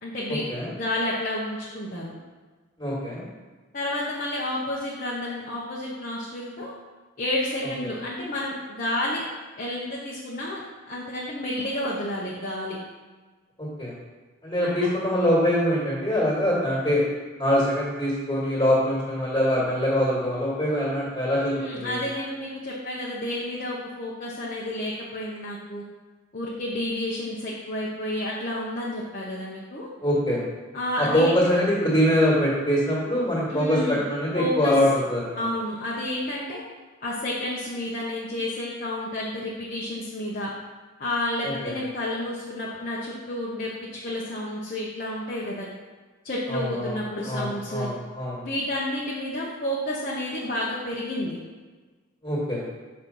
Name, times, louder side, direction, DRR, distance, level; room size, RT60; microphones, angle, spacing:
voice 1, 0.0-2.1 3.7-6.7 7.2-9.2 9.6-12.8 14.8-14.9 21.4-25.8 26.3-29.9 30.7-31.4 33.5-34.0 34.3-34.7 35.4-36.6 37.0-40.5 41.0-45.7 46.2-47.9 48.4-51.4, left 1 dB, 40° left, -5 dB, 0.9 m, -30 dB
voice 2, 2.8-3.2 13.6-13.9 14.4-17.1 17.4-22.0 30.0-30.4 31.0-35.4 41.4-41.7 46.5-46.9 47.2-48.4 52.2-52.6, equal, 20° left, -8 dB, 1.8 m, -23 dB
6.2 x 4.4 x 5.4 m, 1.3 s
head